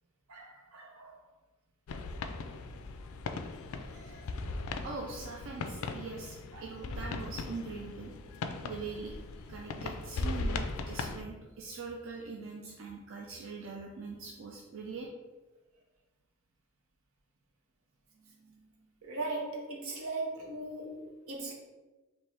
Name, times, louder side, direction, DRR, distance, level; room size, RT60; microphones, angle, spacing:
voice 1, 0.3-1.2 3.6-4.7 6.5-6.7 18.4-18.6 19.0-21.5, right 2 dB, 85° right, 0 dB, 0.9 m, -40 dB
sound 1, 1.9-11.2, left 3 dB, 75° left, 0.3 m, -38 dB
voice 2, 4.8-6.3 6.6-8.1 8.6-9.1 9.5-15.1, right 4 dB, 65° right, -1 dB, 0.4 m, -42 dB
4.4 x 2.6 x 3.3 m, 1.2 s
head